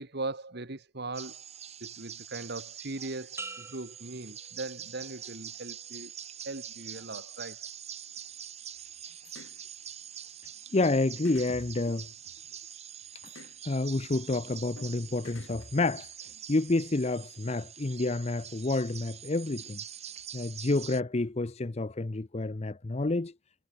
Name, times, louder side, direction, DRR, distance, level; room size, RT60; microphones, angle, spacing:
voice 1, 0.0-1.5 1.8-6.1 6.5-7.7, right 2 dB, 55° right, 1.7 m, -39 dB
sound 1, 1.1-21.0, right 9 dB, 30° right, 1.3 m, -45 dB
sound 2, 3.4-5.2 5.7-6.1, right 3 dB, 10° right, 1.1 m, -46 dB
sound 3, 9.2-9.6 10.8-10.9 11.2-12.7 13.3-13.6 14.8-14.9 15.2-16.3, left 2 dB, 65° left, 2.4 m, -48 dB
voice 2, 10.7-12.1 13.6-16.1 16.5-19.8 20.3-23.3, left 2 dB, 30° left, 0.6 m, -29 dB
head